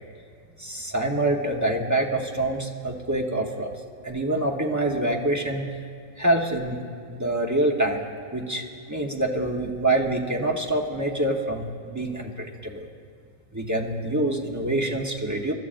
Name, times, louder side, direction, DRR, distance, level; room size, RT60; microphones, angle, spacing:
voice 1, 0.6-3.7 4.0-5.6 6.2-6.8 7.1-8.0 8.3-12.9 13.5-15.5, right 1 dB, 20° right, 0 dB, 0.5 m, -26 dB
28.5 x 13.0 x 2.5 m, 2.4 s
omnidirectional pair, 2.1 m